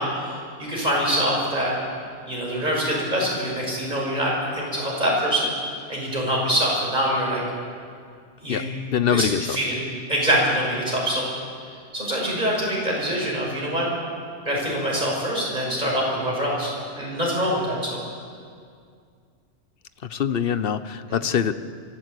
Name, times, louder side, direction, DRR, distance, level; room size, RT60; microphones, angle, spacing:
voice 1, 0.0-1.7 2.3-5.5 5.9-7.4 8.4-8.7 9.1-9.7 10.1-11.3 11.9-13.9 14.4-18.0, equal, 35° right, -3 dB, 6.0 m, -24 dB
voice 2, 8.9-9.6 20.0-21.5, left 8 dB, 55° left, 12 dB, 0.9 m, -23 dB
24.0 x 14.0 x 8.2 m, 2.2 s
omnidirectional pair, 1.2 m